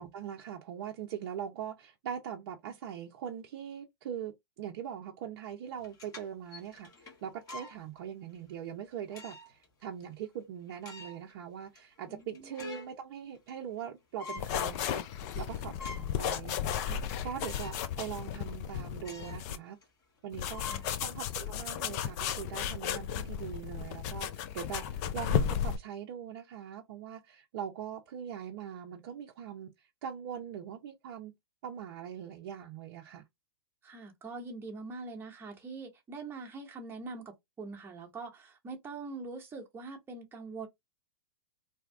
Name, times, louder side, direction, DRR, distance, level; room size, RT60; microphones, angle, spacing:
voice 1, 0.0-19.8 20.2-31.3 31.6-33.2, right 9 dB, 55° right, 0.6 m, -42 dB
sound 1, 5.8-7.8 8.3-8.5 9.1-9.7 10.0-10.1 10.7-11.3 11.7-11.8 12.2-13.0 13.3-13.9 14.2-14.5 15.0-15.1 15.5-16.2 16.6-16.7 17.4-17.9 18.2-18.3 19.0-19.5 19.8-19.9 20.5-21.5, left 3 dB, 25° left, 1.1 m, -46 dB
voice 2, 12.1-12.5 20.7-20.9 33.8-40.7, right 3 dB, 15° right, 1.1 m, -43 dB
sound 2, 14.4-19.6 20.3-25.8, left 9 dB, 45° left, 0.4 m, -34 dB
2.8 x 2.3 x 3.4 m
hypercardioid pair, 115°, 13 cm